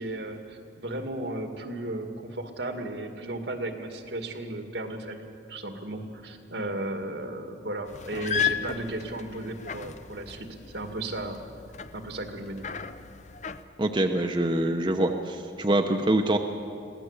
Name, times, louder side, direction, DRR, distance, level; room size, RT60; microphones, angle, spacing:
voice 1, 0.0-10.5 10.7-11.4 11.9-12.7, right 2 dB, 75° right, 5 dB, 2.1 m, -35 dB
sound 1, 7.9-13.6, left 8 dB, 40° left, 0.6 m, -35 dB
voice 2, 13.8-16.4, right 1 dB, 25° right, 5 dB, 0.8 m, -25 dB
22.0 x 16.5 x 8.1 m, 2.6 s
head